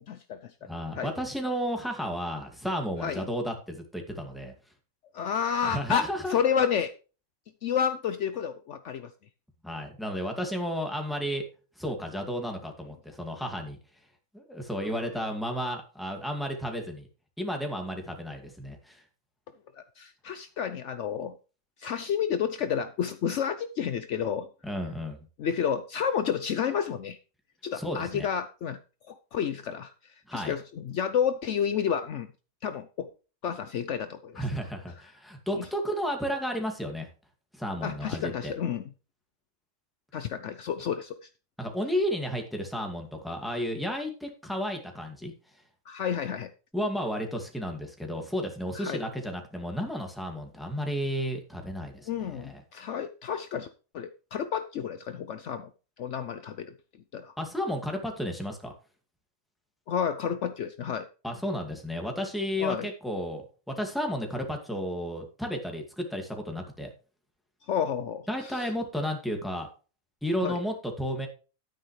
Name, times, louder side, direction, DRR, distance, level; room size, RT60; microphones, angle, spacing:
voice 1, 0.0-0.7 0.9-1.1 3.0-3.2 5.1-6.9 7.6-9.1 14.9-15.1 19.8-21.3 21.8-24.5 25.4-27.2 27.6-28.8 29.1-32.3 32.6-33.1 33.4-34.4 35.5-35.7 37.8-38.9 40.1-41.3 45.9-46.5 48.7-49.0 52.1-53.7 53.9-55.7 56.0-56.7 57.1-57.3 59.9-61.1 62.6-62.9 67.7-68.7 70.4-70.6, left 8 dB, 65° left, 10 dB, 0.9 m, -30 dB
voice 2, 0.6-4.5 5.6-6.4 9.6-11.4 11.8-13.8 14.3-17.1 17.4-19.0 24.6-25.2 27.7-28.3 30.3-30.5 34.4-37.1 37.5-38.5 41.6-45.3 46.7-52.6 57.4-58.7 61.2-66.9 68.3-69.7 70.2-71.3, equal, ahead, 3 dB, 2.1 m, -32 dB
11.0 x 9.5 x 3.3 m, 0.34 s
omnidirectional pair, 1.4 m